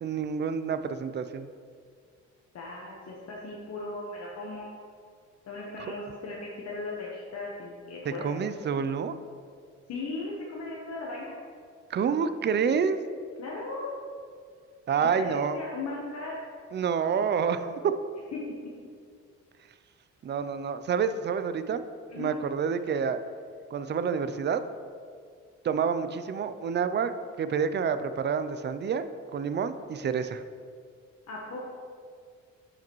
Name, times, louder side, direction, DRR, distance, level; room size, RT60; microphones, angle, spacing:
voice 1, 0.0-1.5 8.1-9.2 11.9-13.0 14.9-15.6 16.7-17.9 20.2-21.9 22.2-23.2 23.7-24.6 25.6-27.1 27.4-30.4, right 6 dB, 35° right, 11 dB, 0.4 m, -28 dB
voice 2, 2.5-4.7 5.5-8.3 9.9-11.4 13.4-13.9 15.0-16.4 18.3-18.4 22.1-22.3 31.3-31.7, left 3 dB, 55° left, -4 dB, 1.1 m, -37 dB
9.4 x 5.0 x 3.1 m, 2.1 s
cardioid pair, 90°, 30 cm